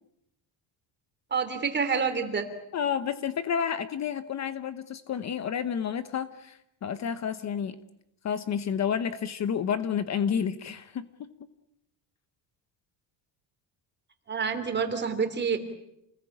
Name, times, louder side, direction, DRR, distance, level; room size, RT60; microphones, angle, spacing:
voice 1, 1.3-2.5 14.3-15.6, right 5 dB, 25° right, 8 dB, 3.1 m, -28 dB
voice 2, 2.7-7.8 8.2-11.3, left 8 dB, 35° left, 12 dB, 1.0 m, -30 dB
29.0 x 20.0 x 8.6 m, 0.80 s
cardioid pair, 170°, 45 cm